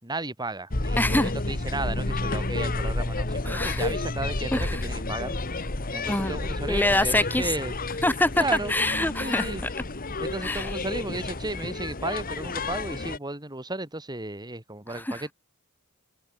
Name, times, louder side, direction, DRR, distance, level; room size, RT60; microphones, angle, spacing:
voice 1, 0.0-5.4 5.9-7.7 8.4-8.7 9.2-9.6 10.2-15.3, right 2 dB, 20° right, 3.8 m, -34 dB
sound 1, 0.7-13.2, left 2 dB, 40° left, 1.7 m, -30 dB
voice 2, 1.0-1.3 3.4-3.9 4.5-4.8 6.1-6.3 6.7-7.5 8.0-9.5 10.4-10.7 14.9-15.2, left 1 dB, 10° left, 4.5 m, -25 dB
head